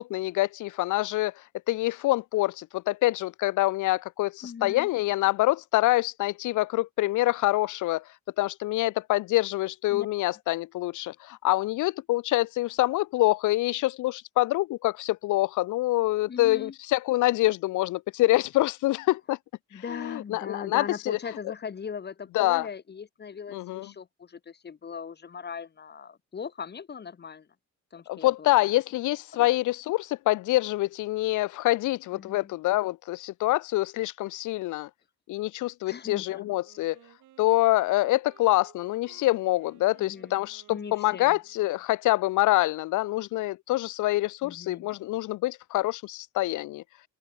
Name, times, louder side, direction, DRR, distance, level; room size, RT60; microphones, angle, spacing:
voice 1, 0.0-8.1 8.4-19.4 19.7-21.2 22.3-22.7 23.5-23.9 28.1-34.9 35.3-37.0 37.4-46.8, left 17 dB, 85° left, 0.7 m, -26 dB
voice 2, 4.4-4.9 9.9-10.1 16.3-16.7 19.7-27.5 27.9-28.5 29.4-29.5 32.1-32.5 35.8-36.5 40.0-40.4 40.7-41.4 44.4-44.9, left 6 dB, 35° left, 1.1 m, -39 dB
Wind instrument woodwind instrument, 36.6-41.8, right 13 dB, 80° right, 6.5 m, -58 dB
cardioid pair, 90°, 30 cm